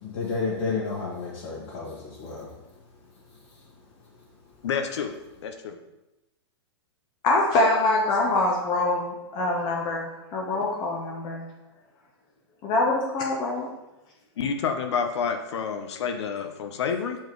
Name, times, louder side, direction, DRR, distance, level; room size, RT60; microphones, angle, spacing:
voice 1, 0.0-2.5, left 4 dB, 50° left, -8 dB, 1.7 m, -31 dB
voice 2, 4.6-5.1 5.4-5.8 14.4-17.2, left 6 dB, 70° left, 5 dB, 0.7 m, -28 dB
voice 3, 7.2-11.5 12.6-13.7, left 2 dB, 30° left, -2 dB, 0.9 m, -24 dB
6.8 x 4.5 x 3.1 m, 0.98 s
hypercardioid pair, 150°, 15 cm